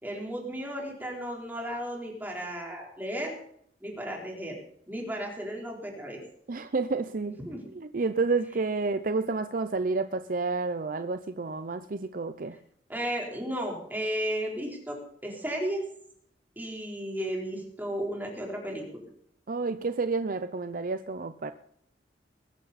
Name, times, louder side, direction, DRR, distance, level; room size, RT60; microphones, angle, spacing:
voice 1, 0.0-3.4 3.8-4.6 4.9-6.2 7.5-7.6 12.9-15.0 15.2-15.8 16.6-19.0, equal, 10° right, -1 dB, 3.9 m, -34 dB
voice 2, 6.5-7.4 7.7-12.6 19.5-21.5, right 3 dB, 50° right, 11 dB, 0.6 m, -30 dB
21.0 x 11.5 x 4.2 m, 0.68 s
head